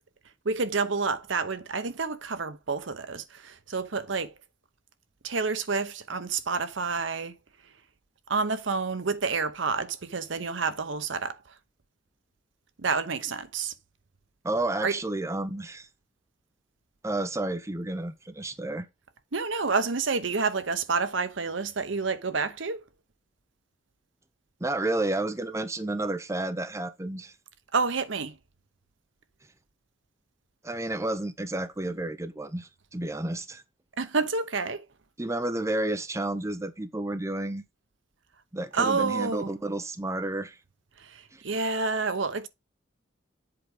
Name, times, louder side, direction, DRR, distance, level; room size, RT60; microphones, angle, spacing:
voice 1, 0.4-4.3 5.2-7.4 8.3-11.5 12.8-13.7 14.8-15.0 19.3-22.8 27.7-28.4 34.0-34.9 38.7-39.5 41.0-42.5, right 4 dB, 65° right, 0.8 m, -29 dB
voice 2, 14.4-15.9 17.0-18.9 24.6-27.3 30.6-33.6 35.2-37.6 38.5-40.6 41.3-41.4, right 2 dB, 15° right, 0.6 m, -31 dB
7.8 x 4.8 x 3.8 m
head